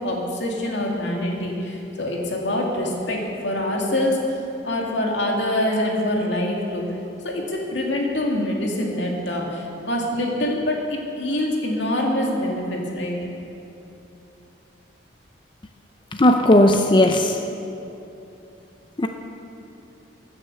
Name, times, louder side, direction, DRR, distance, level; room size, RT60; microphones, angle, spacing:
voice 1, 0.0-4.2 4.6-6.8 7.2-13.2, left 1 dB, 70° left, -1 dB, 2.4 m, -25 dB
voice 2, 16.1-17.4 19.0-19.1, left 1 dB, 25° left, 5 dB, 0.6 m, -16 dB
15.5 x 9.6 x 6.8 m, 2.8 s
head